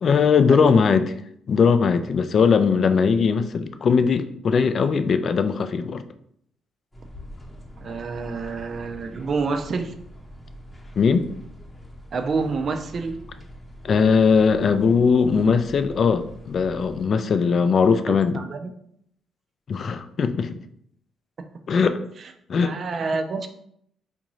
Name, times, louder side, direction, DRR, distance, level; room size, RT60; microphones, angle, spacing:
voice 1, 0.0-1.1 1.5-6.0 11.0-11.3 13.8-18.4 19.7-20.5 21.7-22.0 22.5-22.7, left 5 dB, 50° left, 10 dB, 0.3 m, -19 dB
sound 1, 6.9-17.1, equal, 15° left, 0.9 m, -43 dB
voice 2, 7.8-9.9 12.1-13.2 18.1-18.7 22.6-23.5, right 4 dB, 50° right, 7 dB, 0.4 m, -28 dB
3.6 x 2.6 x 3.0 m, 0.69 s
cardioid pair, 90°, 0 cm